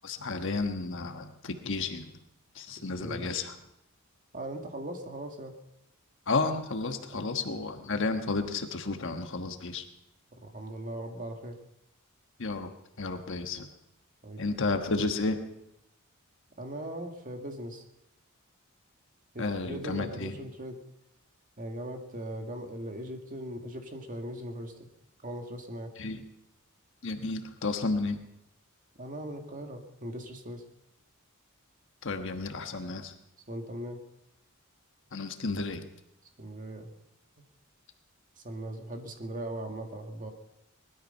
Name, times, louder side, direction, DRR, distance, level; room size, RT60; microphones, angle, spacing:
voice 1, 0.0-2.1 2.5-3.5 6.3-9.8 12.4-12.7 13.0-13.7 14.4-15.4 19.4-20.3 26.0-26.2 27.0-28.2 32.0-33.1 35.1-35.8, left 3 dB, 60° left, 6 dB, 1.3 m, -32 dB
voice 2, 2.8-3.5 4.3-5.5 7.1-7.3 10.3-11.6 14.2-14.4 16.6-17.9 19.3-20.8 21.6-24.7 25.2-25.9 29.0-30.6 33.5-34.0 36.4-36.9 38.4-40.3, right 1 dB, 40° right, 4 dB, 1.9 m, -39 dB
20.0 x 12.5 x 5.6 m, 0.83 s
head